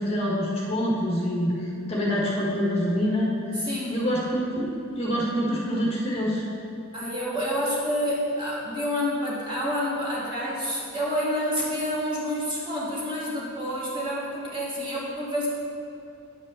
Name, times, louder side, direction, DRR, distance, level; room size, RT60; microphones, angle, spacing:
voice 1, 0.0-1.5 1.9-3.6 3.9-6.4, equal, 30° left, -4 dB, 1.4 m, -26 dB
voice 2, 3.5-4.0 6.9-15.5, equal, 25° right, -7 dB, 2.3 m, -28 dB
9.4 x 5.2 x 6.7 m, 2.7 s
head